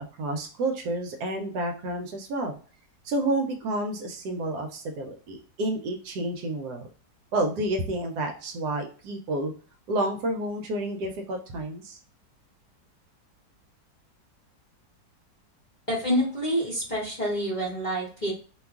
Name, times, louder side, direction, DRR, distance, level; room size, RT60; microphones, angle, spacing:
voice 1, 0.0-2.5 3.0-6.9 7.3-9.5 9.9-12.0, right 1 dB, 75° right, 3 dB, 1.1 m, -30 dB
voice 2, 15.9-18.3, equal, 35° left, -6 dB, 0.7 m, -27 dB
2.9 x 2.3 x 3.4 m, 0.39 s
omnidirectional pair, 1.9 m